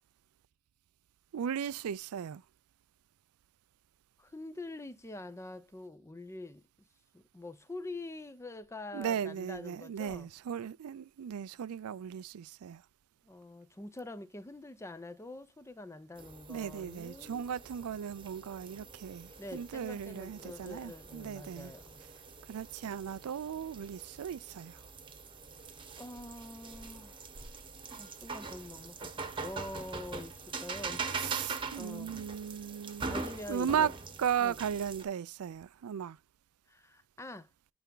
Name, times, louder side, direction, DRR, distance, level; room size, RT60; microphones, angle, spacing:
voice 1, 1.3-2.4 8.9-12.8 16.5-21.7 22.5-24.8 31.2-33.2 33.5-33.9 34.2-36.2, right 8 dB, 90° right, 0.4 m, -36 dB
voice 2, 4.2-6.7 7.1-10.3 13.2-17.5 19.4-22.0 26.0-27.3 28.0-31.2 31.7-32.3 33.1-33.9 34.4-34.6 36.7-37.5, left 2 dB, 15° left, 0.5 m, -45 dB
sound 1, 16.2-35.0, right 4 dB, 25° right, 1.0 m, -43 dB
10.0 x 3.4 x 3.8 m
head